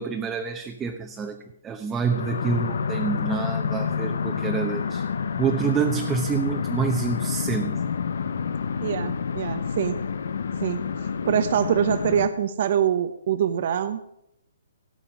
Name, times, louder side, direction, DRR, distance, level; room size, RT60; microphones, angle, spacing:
voice 1, 0.0-5.0 5.4-7.8, right 6 dB, 10° right, 4 dB, 0.9 m, -27 dB
sound 1, 2.0-12.3, left 6 dB, 75° left, 1.1 m, -28 dB
voice 2, 8.8-10.0 10.6-14.0, right 9 dB, 50° right, 11 dB, 0.9 m, -24 dB
17.5 x 5.8 x 9.3 m, 0.78 s
hypercardioid pair, 160°, 0 cm